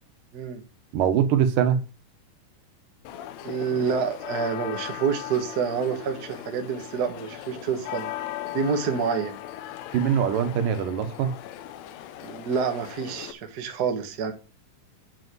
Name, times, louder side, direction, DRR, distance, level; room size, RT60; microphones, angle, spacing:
voice 1, 0.9-1.8 9.9-11.3, right 8 dB, 85° right, 2.7 m, -22 dB
sound 1, 3.0-13.3, left 12 dB, 90° left, 1.5 m, -38 dB
voice 2, 3.4-8.1 8.5-9.3 12.2-14.3, right 6 dB, 50° right, 1.2 m, -28 dB
8.4 x 5.2 x 6.1 m
omnidirectional pair, 3.8 m